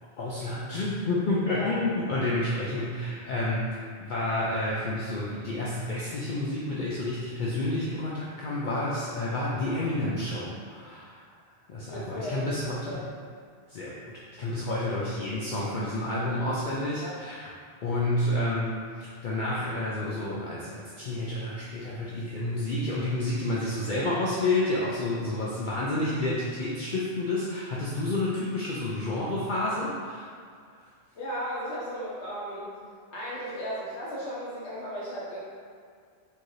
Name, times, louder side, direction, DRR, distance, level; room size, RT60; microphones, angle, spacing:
voice 1, 0.2-11.2 11.7-13.0 13.7-17.5 17.8-30.3, left 2 dB, 55° left, -6 dB, 0.6 m, -30 dB
voice 2, 11.9-13.1 14.8-14.9 17.0-17.2 31.1-32.7 33.1-35.4, equal, 85° left, -7 dB, 1.4 m, -35 dB
4.6 x 2.7 x 3.1 m, 2.1 s
omnidirectional pair, 1.1 m